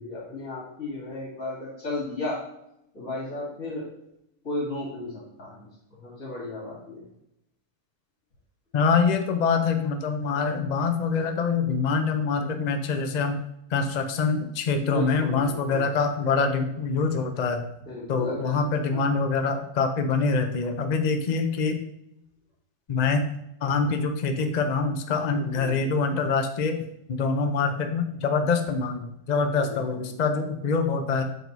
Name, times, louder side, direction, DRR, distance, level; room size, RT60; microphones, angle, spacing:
voice 1, 0.0-2.4 2.9-3.9 4.4-7.0 14.8-15.9 17.8-18.6 18.9-19.1 25.3-25.8 29.5-30.0, left 2 dB, 55° left, -4 dB, 2.9 m, -35 dB
voice 2, 8.7-13.4 13.7-17.7 18.1-21.8 22.9-23.3 23.6-31.2, left 4 dB, 80° left, 6 dB, 0.3 m, -25 dB
6.6 x 4.6 x 4.0 m, 0.82 s
omnidirectional pair, 1.7 m